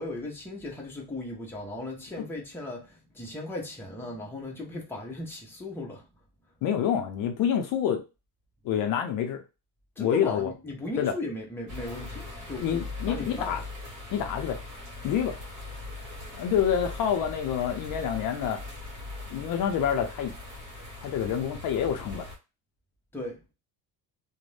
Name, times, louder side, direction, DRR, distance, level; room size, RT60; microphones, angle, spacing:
voice 1, 0.0-6.1 10.0-13.6 23.1-23.4, left 2 dB, 5° left, 0.7 m, -37 dB
voice 2, 6.6-8.0 8.6-9.4 10.0-10.5 11.0-11.1 12.6-13.6 14.1-14.6 15.0-15.4 16.3-18.6 19.3-20.3 21.0-22.3, left 8 dB, 55° left, 0.5 m, -27 dB
sound 1, 11.7-22.4, left 3 dB, 45° right, 1.2 m, -40 dB
2.5 x 2.1 x 3.2 m
cardioid pair, 145°, 40 cm